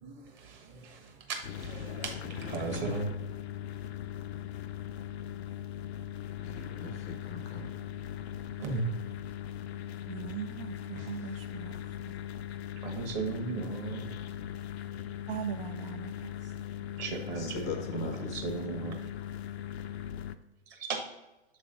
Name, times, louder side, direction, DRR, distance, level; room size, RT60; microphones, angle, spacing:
voice 1, 0.0-3.1 8.6-8.9 10.9-11.1 12.8-14.1 17.0-19.0 20.7-21.0, right 4 dB, 35° right, 3 dB, 1.2 m, -36 dB
sound 1, 1.4-20.4, left 10 dB, 75° left, 0.5 m, -40 dB
voice 2, 6.4-7.8 17.4-18.9, left 4 dB, 20° left, 6 dB, 0.5 m, -40 dB
voice 3, 10.1-12.1 15.3-16.5, right 10 dB, 60° right, 8 dB, 0.4 m, -40 dB
6.9 x 3.2 x 5.0 m, 0.99 s
hypercardioid pair, 120°, 32 cm